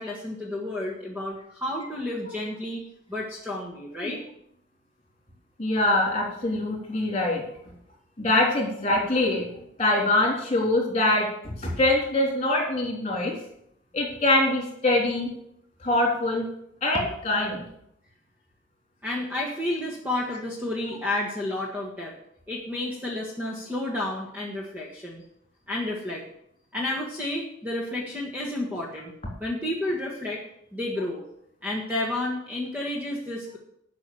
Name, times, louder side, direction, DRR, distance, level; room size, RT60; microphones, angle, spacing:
voice 1, 0.0-2.8 3.1-4.2 19.0-22.1 22.5-25.2 25.7-26.2 26.7-29.1 29.4-30.4 30.7-31.2 31.6-33.6, left 1 dB, 10° right, -3 dB, 1.5 m, -31 dB
voice 2, 5.6-7.4 8.2-9.4 9.8-13.3 13.9-15.3 15.8-16.4 16.8-17.6, left 2 dB, 30° left, -1 dB, 3.5 m, -24 dB
11.0 x 6.0 x 7.9 m, 0.74 s
head